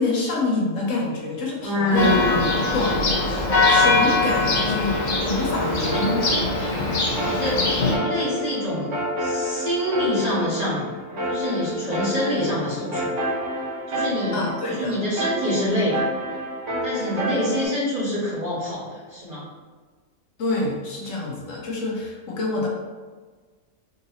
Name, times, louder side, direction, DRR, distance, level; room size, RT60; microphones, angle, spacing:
voice 1, 0.0-2.3 2.7-6.3 6.6-7.0 7.4-7.5 14.3-15.0 20.4-22.7, left 2 dB, 70° left, -2 dB, 1.0 m, -27 dB
voice 2, 1.6-2.4 7.1-7.6 8.0-13.1 13.9-14.4 14.7-16.0 16.8-19.5 22.6-22.7, equal, 30° right, -9 dB, 1.0 m, -26 dB
Church bell, 2.0-8.0, left 3 dB, 50° left, 0.6 m, -22 dB
sound 1, 5.5-17.6, equal, 55° right, 1.1 m, -29 dB
3.9 x 2.6 x 2.8 m, 1.4 s
omnidirectional pair, 1.4 m